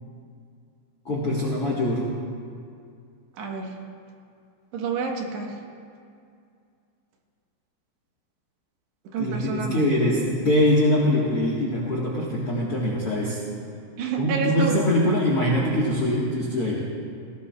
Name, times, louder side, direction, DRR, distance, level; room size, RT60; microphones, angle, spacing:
voice 1, 1.0-2.1 9.2-13.4 14.2-16.8, left 1 dB, 60° left, -4 dB, 1.5 m, -23 dB
voice 2, 3.4-3.8 4.7-5.5 9.1-9.8 14.0-14.8, right 5 dB, 75° right, 1 dB, 3.4 m, -28 dB
19.0 x 18.5 x 2.4 m, 2.3 s
omnidirectional pair, 5.1 m